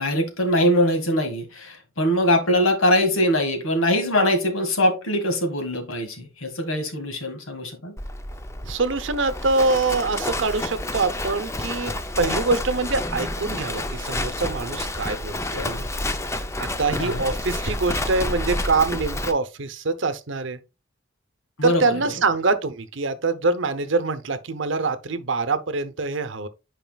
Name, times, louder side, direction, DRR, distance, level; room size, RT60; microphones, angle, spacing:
voice 1, 0.0-8.0 15.6-15.9 17.0-17.2 21.6-21.9, equal, 85° left, 1.9 m, -22 dB
Livestock farm animals working animals, 8.0-19.3, left 1 dB, 15° left, 0.5 m, -29 dB
voice 2, 8.6-15.7 16.6-20.6 21.6-26.5, right 3 dB, 60° right, 0.8 m, -24 dB
9.2 x 4.9 x 2.3 m
head